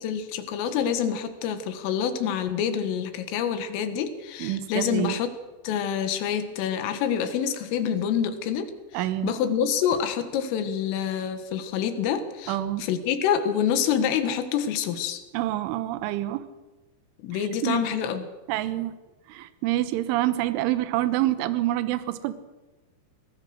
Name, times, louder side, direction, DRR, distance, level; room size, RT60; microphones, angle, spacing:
voice 1, 0.0-5.3 5.6-8.7 8.9-15.2 17.2-18.3, left 8 dB, 80° left, 9 dB, 4.1 m, -27 dB
voice 2, 4.4-5.2 8.9-9.3 12.5-12.9 15.3-16.4 17.6-17.8 18.5-19.0 19.3-22.3, right 14 dB, 75° right, 13 dB, 3.4 m, -27 dB
23.0 x 18.5 x 6.4 m, 1.2 s
omnidirectional pair, 5.8 m